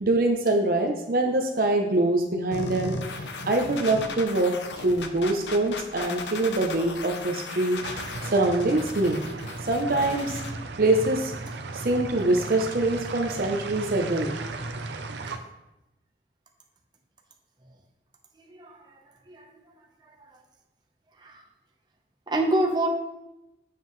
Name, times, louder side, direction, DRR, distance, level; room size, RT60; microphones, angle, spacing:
voice 1, 0.0-3.0 3.5-7.8 8.3-9.2 9.6-10.4 10.8-11.4 11.7-14.3, right 2 dB, 55° right, 3 dB, 0.7 m, -24 dB
sound 1, 2.5-10.5, left 3 dB, 85° left, 0.7 m, -36 dB
sound 2, 7.8-15.4, right 3 dB, 85° right, 0.6 m, -36 dB
voice 2, 18.4-19.5 20.3-20.4 21.2-21.4 22.3-22.9, right 1 dB, 25° right, 0 dB, 0.9 m, -28 dB
7.5 x 7.5 x 3.2 m, 0.93 s
head